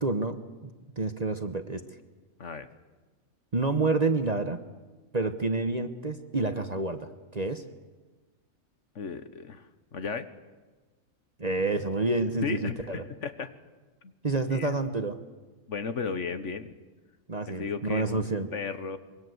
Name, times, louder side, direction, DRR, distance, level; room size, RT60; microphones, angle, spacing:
voice 1, 0.0-1.8 3.5-4.6 5.1-7.6 11.4-13.0 14.2-15.2 17.3-18.5, right 3 dB, 30° right, 9 dB, 1.0 m, -29 dB
voice 2, 8.9-9.7 9.9-10.3 12.4-13.5 14.0-14.1 14.5-14.7 15.7-16.8 17.5-18.3 18.5-19.0, left 5 dB, 55° left, 11 dB, 1.3 m, -34 dB
24.5 x 22.5 x 7.9 m, 1.3 s
omnidirectional pair, 1.6 m